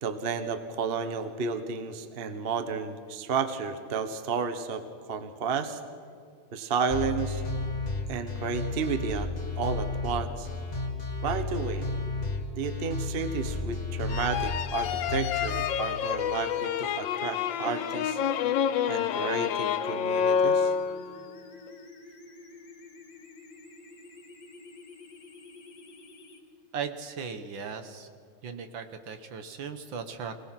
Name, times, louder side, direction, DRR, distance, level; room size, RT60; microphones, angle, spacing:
voice 1, 0.0-5.8 6.5-7.4 8.1-9.3 9.6-10.5 11.2-11.9 12.5-18.2 18.9-20.7, right 5 dB, 35° right, 9 dB, 1.0 m, -32 dB
sound 1, 6.9-15.6, left 3 dB, 20° left, 2.0 m, -33 dB
sound 2, 14.1-21.3, left 8 dB, 70° left, 1.3 m, -28 dB
sound 3, 16.4-26.4, left 1 dB, 55° left, 2.3 m, -49 dB
voice 2, 26.7-28.1 28.4-30.5, right 6 dB, 65° right, 8 dB, 1.8 m, -37 dB
25.5 x 18.5 x 6.0 m, 2.2 s
omnidirectional pair, 2.4 m